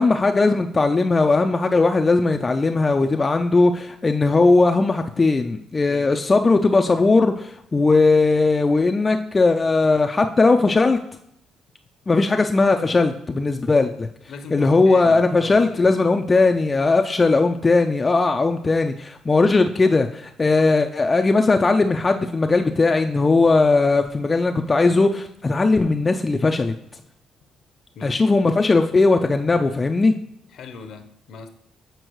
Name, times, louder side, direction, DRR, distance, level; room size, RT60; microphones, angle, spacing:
voice 1, 0.0-11.0 12.1-14.1 14.5-26.7 28.0-30.2, left 3 dB, 25° left, 5 dB, 0.3 m, -18 dB
voice 2, 14.3-16.0 27.9-28.2 30.5-31.5, left 4 dB, 70° left, 7 dB, 0.6 m, -39 dB
7.8 x 4.5 x 3.0 m, 0.76 s
cardioid pair, 90°, 0 cm